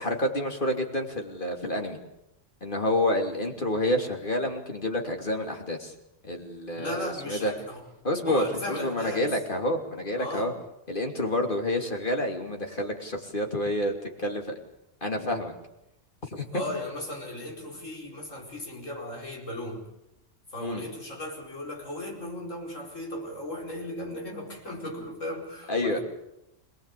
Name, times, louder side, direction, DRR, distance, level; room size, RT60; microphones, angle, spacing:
voice 1, 0.0-2.0 2.6-5.9 6.2-7.5 8.0-10.5 10.9-13.9 14.2-14.6 15.0-15.5 16.3-16.6 20.6-20.8 25.7-26.0, left 1 dB, 40° left, 3 dB, 3.1 m, -28 dB
voice 2, 6.7-7.9 8.3-9.4 10.2-10.6 16.5-19.9 20.5-26.0, left 1 dB, 85° left, 0 dB, 5.3 m, -36 dB
26.5 x 18.5 x 8.5 m, 0.87 s
omnidirectional pair, 1.3 m